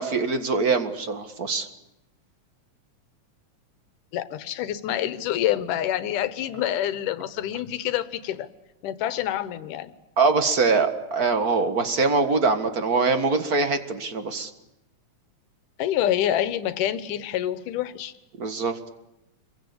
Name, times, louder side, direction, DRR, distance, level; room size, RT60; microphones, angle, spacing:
voice 1, 0.0-1.7 10.2-14.5 18.4-18.9, right 4 dB, 35° right, 8 dB, 1.8 m, -23 dB
voice 2, 4.1-8.5 8.8-9.9 15.8-18.1, left 11 dB, 85° left, 14 dB, 2.7 m, -27 dB
26.5 x 23.0 x 8.6 m, 0.90 s
omnidirectional pair, 3.6 m